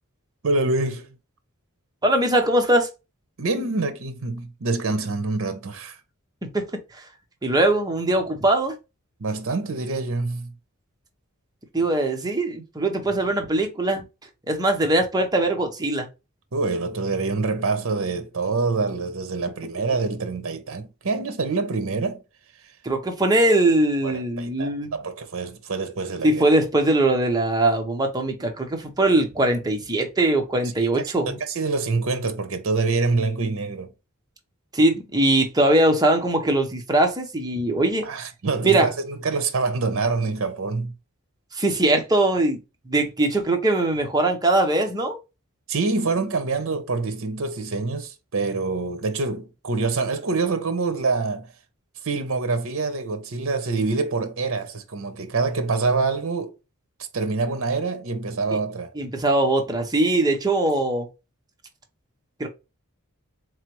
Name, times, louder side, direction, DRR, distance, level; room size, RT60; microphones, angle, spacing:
voice 1, 0.4-1.1 3.4-6.0 9.2-10.5 16.5-22.2 24.0-26.4 30.8-30.9 31.2-33.9 38.0-40.9 45.7-51.5 52.0-56.5 57.1-58.9, right 3 dB, 65° right, 0.7 m, -26 dB
voice 2, 2.0-2.9 6.4-7.0 7.4-8.8 11.7-14.0 14.5-16.1 22.8-25.0 26.2-31.4 34.7-38.1 38.6-38.9 41.5-42.6 42.9-45.2 59.0-61.1 62.4-62.5, right 1 dB, 20° right, 0.8 m, -21 dB
3.8 x 3.2 x 3.0 m
head